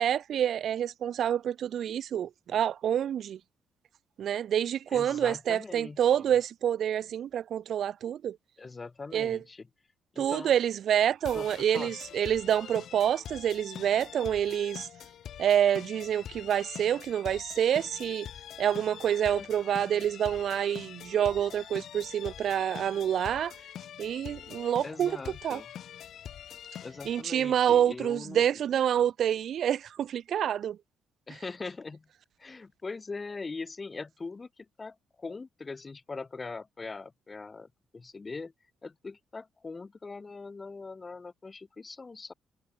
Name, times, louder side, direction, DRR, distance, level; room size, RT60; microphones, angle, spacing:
voice 1, 0.0-3.4 4.2-8.4 9.1-9.4 10.2-14.9 15.4-18.3 18.6-23.5 24.0-25.2 25.4-25.6 27.1-30.8, right 9 dB, 65° right, 0.4 m, -27 dB
voice 2, 4.9-6.3 8.6-9.7 10.1-10.5 11.3-11.9 19.2-19.5 24.8-25.7 26.8-28.4 31.3-32.1 32.4-38.5 38.8-42.3, left 4 dB, 30° left, 2.9 m, -41 dB
sound 1, 11.2-27.2, left 10 dB, 70° left, 5.6 m, -44 dB
cardioid pair, 90°, 0 cm